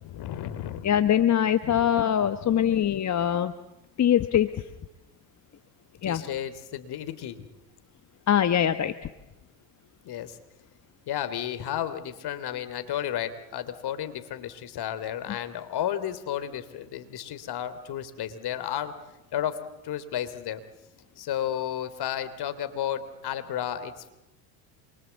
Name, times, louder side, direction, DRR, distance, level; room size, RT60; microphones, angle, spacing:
voice 1, 0.0-0.9 1.6-1.9 6.0-7.4 10.0-10.4 11.1-18.9 19.3-19.6 19.8-20.6 21.2-24.1, left 10 dB, 50° left, 11 dB, 3.2 m, -32 dB
voice 2, 0.8-3.5 4.0-4.7 6.0-6.2 8.3-9.1, left 10 dB, 35° left, 10 dB, 1.3 m, -23 dB
27.5 x 23.5 x 8.2 m, 0.97 s
hypercardioid pair, 85°, 49 cm